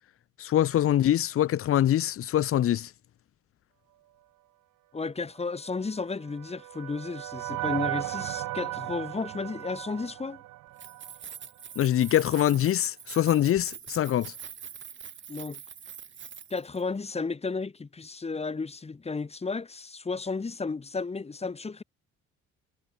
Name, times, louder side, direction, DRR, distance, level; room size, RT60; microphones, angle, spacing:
voice 1, 0.4-2.9 11.8-14.3, left 12 dB, 50° left, 0.6 m, -24 dB
voice 2, 4.9-10.4 15.3-15.6 16.5-21.8, left 4 dB, 20° left, 1.0 m, -33 dB
sound 1, 5.9-11.2, right 16 dB, 85° right, 1.4 m, -36 dB
Keys jangling, 10.7-16.8, right 8 dB, 40° right, 0.9 m, -44 dB
cardioid pair, 90°, 30 cm